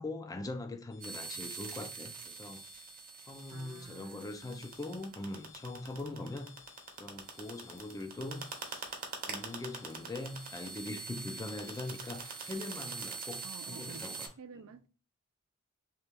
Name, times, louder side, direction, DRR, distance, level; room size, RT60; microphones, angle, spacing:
voice 1, 0.0-2.6 3.2-6.5 7.0-8.9 9.3-14.7, left 2 dB, 15° left, 0.4 m, -42 dB
sound 1, 0.9-12.6, left 8 dB, 55° left, 0.8 m, -60 dB
sound 2, 1.0-14.3, right 4 dB, 40° right, 0.8 m, -44 dB
voice 2, 3.5-4.7 13.4-14.0 14.4-14.9, right 5 dB, 70° right, 0.4 m, -51 dB
3.3 x 3.0 x 3.4 m
head